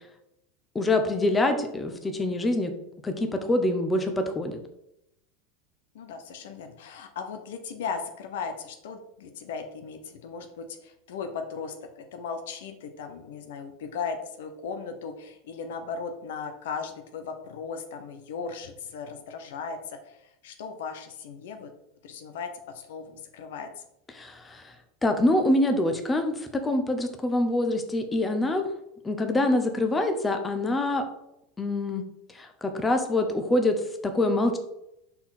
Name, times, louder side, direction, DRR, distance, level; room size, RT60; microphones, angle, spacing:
voice 1, 0.7-2.7 3.0-4.6 24.1-24.7 25.0-28.7 29.0-31.0 31.6-32.0 32.3-34.6, left 1 dB, 15° left, 6 dB, 0.9 m, -25 dB
voice 2, 2.0-2.4 5.9-21.7 22.0-23.7, left 5 dB, 75° left, 6 dB, 0.8 m, -37 dB
5.7 x 4.1 x 4.2 m, 0.81 s
hypercardioid pair, 105°, 0 cm